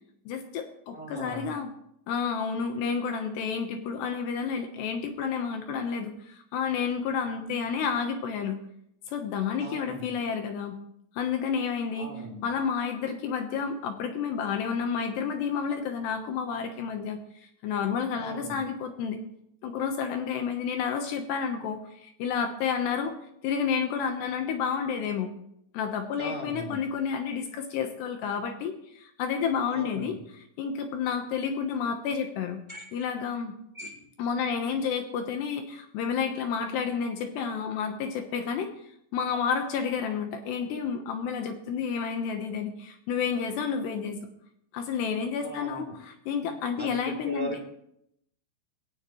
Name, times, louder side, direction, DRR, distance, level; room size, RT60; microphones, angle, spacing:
voice 1, 0.3-1.7 2.1-8.6 9.1-10.8 11.2-12.1 12.4-17.2 17.6-19.2 19.6-23.1 23.4-25.3 25.7-32.6 32.9-33.6 34.2-38.7 39.1-44.2 44.7-47.6, left 6 dB, 70° left, 5 dB, 2.9 m, -30 dB
voice 2, 0.9-1.5 9.6-10.1 12.0-12.5 18.2-18.7 26.2-26.8 29.7-30.2 32.7-32.9 33.7-34.0 45.4-46.0 46.8-47.6, right 1 dB, 15° right, 0 dB, 2.6 m, -38 dB
18.0 x 17.0 x 3.2 m, 0.74 s
omnidirectional pair, 5.7 m